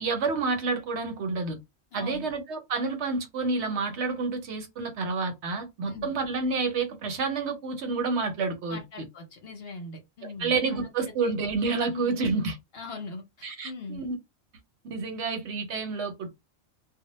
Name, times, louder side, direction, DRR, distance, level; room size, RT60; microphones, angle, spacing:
voice 1, 0.0-1.6 1.9-8.8 10.2-12.6 13.4-14.2 14.9-16.3, right 4 dB, 65° right, 0.8 m, -29 dB
voice 2, 1.9-2.3 5.9-6.1 8.7-10.5 11.0-11.3 11.9-12.4 12.7-14.0, left 3 dB, 60° left, 0.8 m, -40 dB
2.1 x 2.1 x 3.0 m
omnidirectional pair, 1.4 m